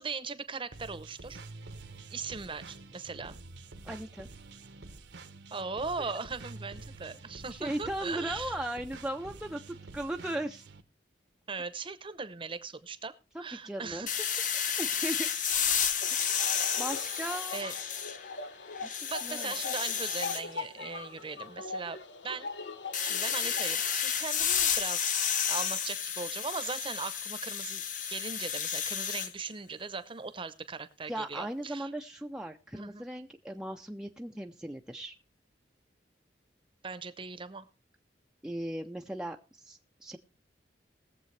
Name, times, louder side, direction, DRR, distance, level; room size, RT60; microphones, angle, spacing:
voice 1, 0.0-1.4 2.1-3.4 5.5-8.6 11.5-13.1 13.4-14.1 17.1-17.2 17.5-17.7 19.1-22.5 23.0-27.8 28.1-31.9 32.7-33.0 36.8-37.7, right 4 dB, 30° right, 13 dB, 0.8 m, -39 dB
sound 1, 0.7-10.8, right 3 dB, 75° right, 1.0 m, -48 dB
voice 2, 3.8-4.3 7.6-10.7 13.3-14.1 14.8-15.3 16.1-16.2 16.8-17.6 18.8-18.9 19.2-19.5 31.1-35.1 38.4-40.2, right 1 dB, 5° right, 2 dB, 0.5 m, -37 dB
sound 2, 14.1-18.3 18.7-20.4 22.9-29.3, left 8 dB, 50° left, 0.8 m, -31 dB
sound 3, 16.0-24.0, left 4 dB, 90° left, 0.9 m, -41 dB
20.5 x 7.4 x 3.2 m, 0.33 s
head